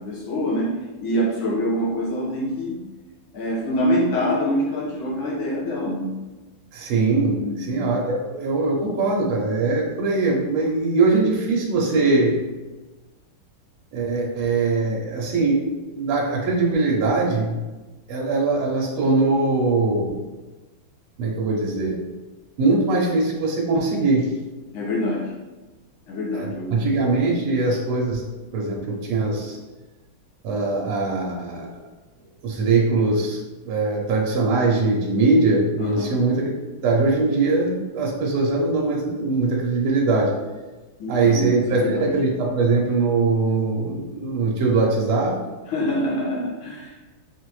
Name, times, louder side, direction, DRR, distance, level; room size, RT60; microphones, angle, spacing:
voice 1, 0.0-2.8 3.3-6.1 7.4-7.8 24.7-25.3 26.1-26.9 35.8-36.2 41.0-42.1 45.7-47.0, equal, 70° left, -3 dB, 1.9 m, -25 dB
voice 2, 6.7-12.4 13.9-17.6 18.1-20.2 21.2-22.0 22.6-24.3 26.3-28.2 28.5-29.6 30.4-31.9 32.4-33.4 33.7-36.5 36.8-40.4 41.1-45.4, right 3 dB, 90° right, -2 dB, 1.7 m, -21 dB
5.5 x 2.7 x 3.0 m, 1.2 s
omnidirectional pair, 2.3 m